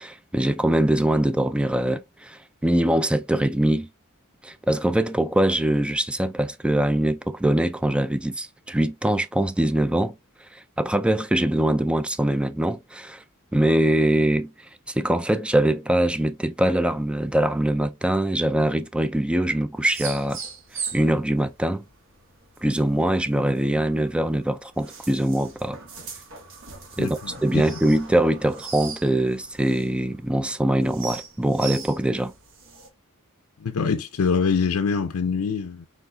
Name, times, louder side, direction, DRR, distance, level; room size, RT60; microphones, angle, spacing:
voice 1, 0.0-3.9 4.4-10.2 10.5-13.2 13.5-14.5 14.9-20.4 20.7-21.8 22.6-25.8 27.0-32.3, right 1 dB, 5° right, 0.3 m, -23 dB
sound 1, 19.8-32.9, right 5 dB, 60° right, 1.2 m, -40 dB
voice 2, 27.0-27.6 33.6-35.9, left 5 dB, 70° left, 0.5 m, -24 dB
4.8 x 4.0 x 2.2 m
head